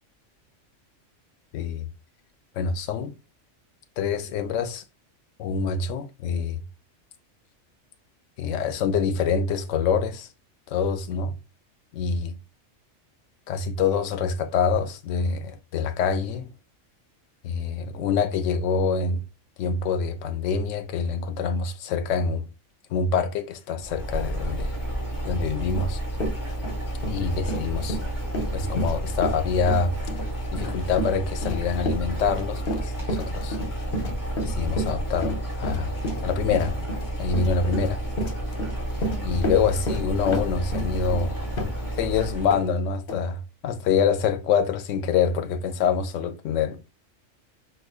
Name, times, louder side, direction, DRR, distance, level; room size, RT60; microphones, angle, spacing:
voice 1, 1.5-1.9 2.6-3.1 4.0-4.8 5.4-6.6 8.4-10.3 10.7-11.4 11.9-12.4 13.5-16.5 17.4-19.2 19.6-22.5 22.9-24.7 25.2-26.0 27.1-28.0 28.5-29.9 30.5-33.6 34.4-35.9 36.2-36.9 37.2-38.0 39.2-41.4 41.9-46.8, left 5 dB, 80° left, 0.9 m, -25 dB
sound 1, 23.8-42.7, right 1 dB, 15° left, 1.2 m, -31 dB
Run, 25.7-25.8 26.1-42.1 42.5-42.6 43.1-43.2, equal, 50° left, 0.9 m, -31 dB
4.8 x 2.4 x 2.4 m
omnidirectional pair, 1.3 m